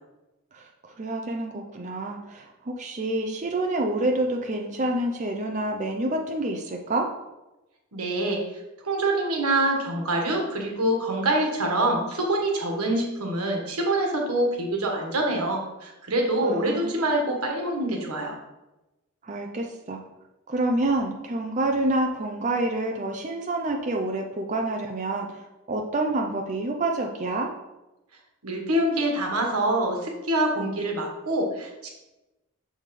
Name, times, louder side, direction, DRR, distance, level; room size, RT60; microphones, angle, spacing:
voice 1, 0.5-7.1 16.4-17.0 19.2-20.0 20.5-27.5, right 2 dB, 35° right, 2 dB, 0.5 m, -28 dB
voice 2, 7.9-8.4 8.8-18.4 28.4-31.7, right 1 dB, 90° right, 1 dB, 1.5 m, -25 dB
6.6 x 5.6 x 3.2 m, 0.99 s
head